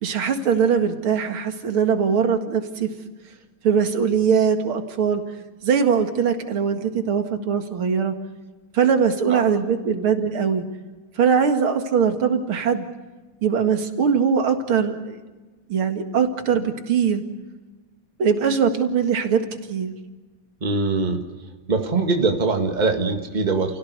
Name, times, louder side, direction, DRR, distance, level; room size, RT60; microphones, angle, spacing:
voice 1, 0.0-2.9 3.6-5.2 5.6-8.1 8.7-10.6 11.2-12.9 13.4-15.2 15.7-17.2 18.2-19.9, right 6 dB, 75° right, 6 dB, 2.8 m, -21 dB
voice 2, 20.6-21.2 21.7-23.8, right 3 dB, 20° right, 4 dB, 2.0 m, -22 dB
30.0 x 17.0 x 8.1 m, 1.3 s
omnidirectional pair, 2.3 m